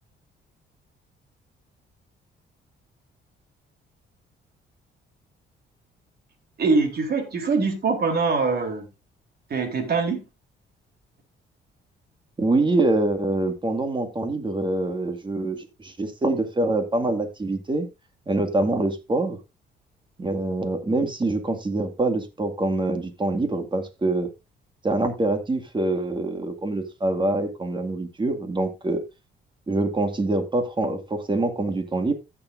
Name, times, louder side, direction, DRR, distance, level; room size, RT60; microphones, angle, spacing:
voice 1, 6.6-8.9 9.5-10.2, right 4 dB, 50° right, 4 dB, 3.4 m, -23 dB
voice 2, 12.4-17.9 18.3-19.4 20.2-24.3 24.8-29.0 29.7-32.1, right 2 dB, 25° right, 7 dB, 2.1 m, -25 dB
15.5 x 7.0 x 2.6 m, 0.24 s
cardioid pair, 90°, 20 cm